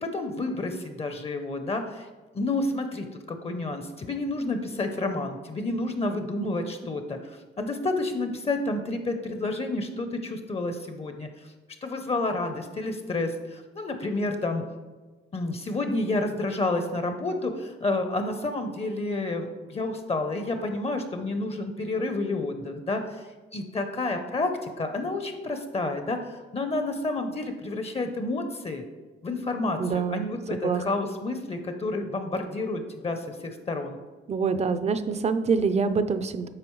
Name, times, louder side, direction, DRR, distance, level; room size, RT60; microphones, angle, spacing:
voice 1, 0.0-2.1 2.3-11.5 11.8-14.6 15.3-23.2 23.5-28.8 29.2-34.0, left 2 dB, 30° left, 6 dB, 0.6 m, -30 dB
voice 2, 29.8-30.3 30.6-30.8 34.3-36.5, right 5 dB, 35° right, 11 dB, 0.5 m, -25 dB
8.8 x 4.1 x 3.1 m, 1.3 s
cardioid pair, 90°, 20 cm